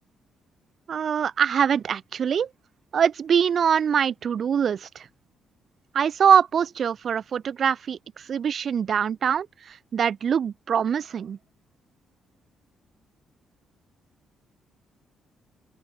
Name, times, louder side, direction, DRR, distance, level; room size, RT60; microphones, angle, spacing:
voice 1, 0.9-2.5 2.9-5.1 5.9-11.4, right 7 dB, 45° right, 2.9 m, -23 dB
open air
cardioid pair, 145°, 0 cm